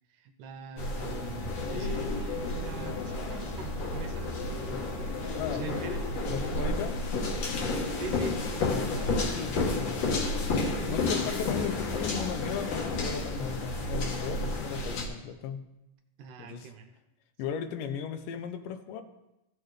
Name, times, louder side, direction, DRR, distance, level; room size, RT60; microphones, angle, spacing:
voice 1, 0.1-5.0 5.5-6.9 7.9-8.4 10.8-11.5 16.2-16.9 17.4-17.6, right 5 dB, 80° right, 7 dB, 2.1 m, -43 dB
sound 1, 0.8-15.1, left 2 dB, 60° left, 2.1 m, -31 dB
voice 2, 5.3-5.7 6.3-7.0 8.6-10.0 10.9-15.7 16.4-16.7 17.4-19.0, left 8 dB, 85° left, 9 dB, 2.3 m, -36 dB
15.5 x 6.5 x 3.3 m, 0.92 s
omnidirectional pair, 3.8 m